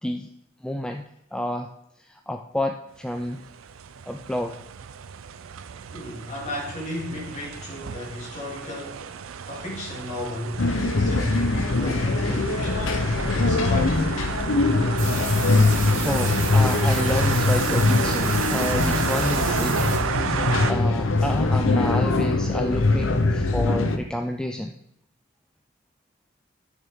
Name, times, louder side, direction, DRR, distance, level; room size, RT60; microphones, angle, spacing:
voice 1, 0.6-1.0 1.3-1.7 2.0-3.4 4.1-4.6 12.4-12.5 16.0-19.8 20.7-24.7, left 1 dB, 5° left, 0.4 m, -29 dB
sound 1, 3.1-20.7, right 7 dB, 90° right, 0.5 m, -32 dB
voice 2, 5.9-9.1 9.5-13.0 13.3-14.4, left 2 dB, 35° left, 3.0 m, -35 dB
sound 2, 10.6-24.0, left 3 dB, 75° left, 0.8 m, -22 dB
sound 3, 15.0-20.0, right 3 dB, 70° right, 3.3 m, -33 dB
12.5 x 6.4 x 3.7 m
head